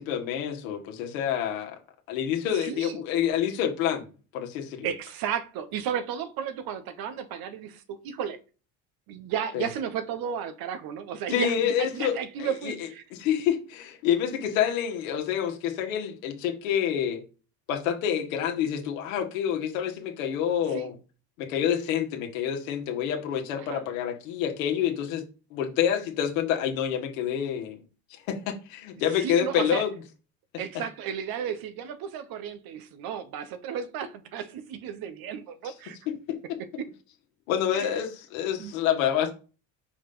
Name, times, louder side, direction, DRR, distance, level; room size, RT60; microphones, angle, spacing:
voice 1, 0.0-1.8 2.1-4.1 4.3-4.9 9.5-9.7 11.3-17.2 17.7-20.9 21.4-25.2 25.5-27.8 28.3-29.9 36.3-36.4 37.5-39.3, left 9 dB, 90° left, 1.8 m, -27 dB
voice 2, 2.5-3.0 4.8-8.4 9.1-13.0 20.7-20.9 23.6-23.8 29.2-29.8 30.6-36.0 36.8-36.9 37.7-37.9 38.6-38.7, right 8 dB, 65° right, 1.2 m, -34 dB
5.4 x 5.2 x 3.9 m
supercardioid pair, 95°, 39 cm